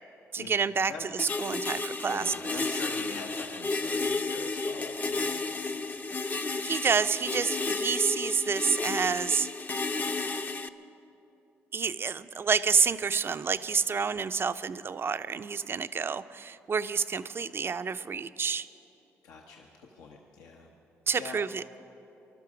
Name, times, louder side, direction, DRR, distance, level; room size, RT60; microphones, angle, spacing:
voice 1, 0.3-2.6 6.3-9.5 11.7-18.7 21.1-21.6, right 6 dB, 40° right, 13 dB, 0.5 m, -29 dB
sound 1, 1.2-10.7, left 3 dB, 30° left, 0.6 m, -32 dB
voice 2, 2.0-5.6 19.2-20.7 21.2-21.4, left 4 dB, 85° left, 0 dB, 0.9 m, -43 dB
20.5 x 12.0 x 5.0 m, 2.9 s
supercardioid pair, 60°, 6 cm